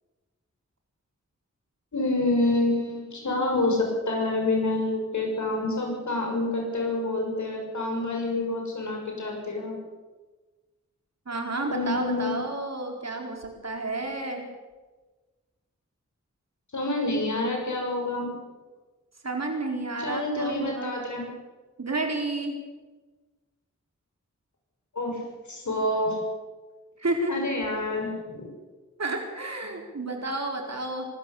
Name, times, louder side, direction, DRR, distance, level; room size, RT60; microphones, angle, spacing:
voice 1, 1.9-9.7 11.7-12.4 16.7-18.3 20.0-21.3 24.9-25.2 25.5-26.2 27.3-28.4, left 2 dB, 80° left, 1 dB, 7.1 m, -27 dB
voice 2, 11.3-14.4 19.2-20.9 21.8-22.6 27.0-27.4 29.0-31.1, right 2 dB, 65° right, 3 dB, 4.5 m, -31 dB
24.5 x 13.5 x 8.6 m, 1.3 s
wide cardioid pair, 55°, 29 cm